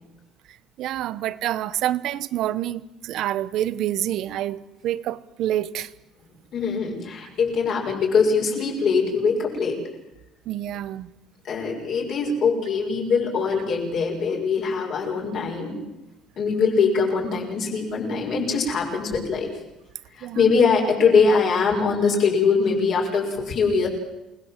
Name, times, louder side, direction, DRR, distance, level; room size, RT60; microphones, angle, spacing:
voice 1, 0.8-5.9 10.5-11.1 20.2-20.4, right 12 dB, 55° right, 16 dB, 1.1 m, -27 dB
voice 2, 6.5-9.8 11.4-15.8 16.4-19.5 20.2-23.9, left 5 dB, 45° left, 0 dB, 6.2 m, -22 dB
29.0 x 19.5 x 7.6 m, 0.95 s
cardioid pair, 165°, 0 cm